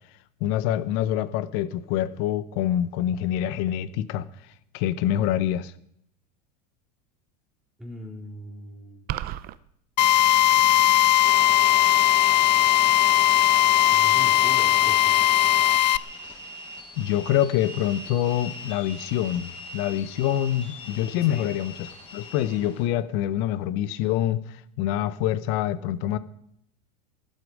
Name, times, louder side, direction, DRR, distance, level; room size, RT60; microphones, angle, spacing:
voice 1, 0.4-4.3 4.7-5.7 17.0-26.2, left 11 dB, 60° left, 1.2 m, -26 dB
voice 2, 7.8-9.1 13.9-15.2 21.2-21.5, left 1 dB, ahead, 4.2 m, -40 dB
sound 1, 9.1-9.6, right 14 dB, 45° right, 0.9 m, -31 dB
Drill, 10.0-16.0, left 13 dB, 90° left, 0.6 m, -19 dB
sound 2, 11.2-22.9, left 3 dB, 30° left, 7.3 m, -40 dB
19.5 x 12.0 x 5.0 m
hypercardioid pair, 100°, 21 cm